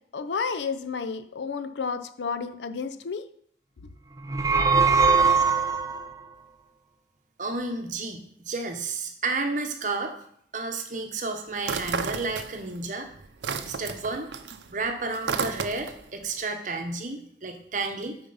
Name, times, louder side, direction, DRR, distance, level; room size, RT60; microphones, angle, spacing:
voice 1, 0.1-3.2 3.8-3.9, left 5 dB, 85° left, 11 dB, 0.5 m, -31 dB
sound 1, 4.2-6.1, right 5 dB, 20° right, 0.4 m, -21 dB
voice 2, 7.4-10.1 10.5-13.1 13.7-14.3 14.7-18.2, right 3 dB, 45° right, 4 dB, 0.9 m, -31 dB
sound 2, 11.6-12.8 13.1-16.1, right 5 dB, 80° right, 0.6 m, -32 dB
7.2 x 4.4 x 5.4 m, 0.68 s
head